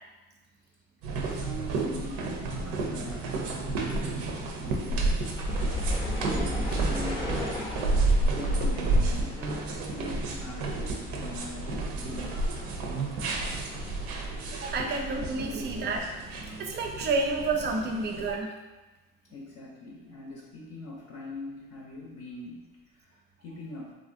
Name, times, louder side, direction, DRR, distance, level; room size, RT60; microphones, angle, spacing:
sound 1, 1.0-18.3, right 2 dB, 85° right, 0.5 m, -31 dB
voice 1, 1.1-5.2 6.0-7.6 8.3-12.7 19.3-23.9, left 2 dB, 60° left, -3 dB, 0.6 m, -43 dB
sound 2, 5.3-16.5 16.7-17.8 18.3-18.4, left 1 dB, 15° left, 0.5 m, -38 dB
voice 2, 14.5-16.1 16.6-18.6, right 3 dB, 35° right, 3 dB, 0.4 m, -30 dB
3.0 x 2.5 x 2.5 m, 1.1 s
cardioid pair, 115°, 29 cm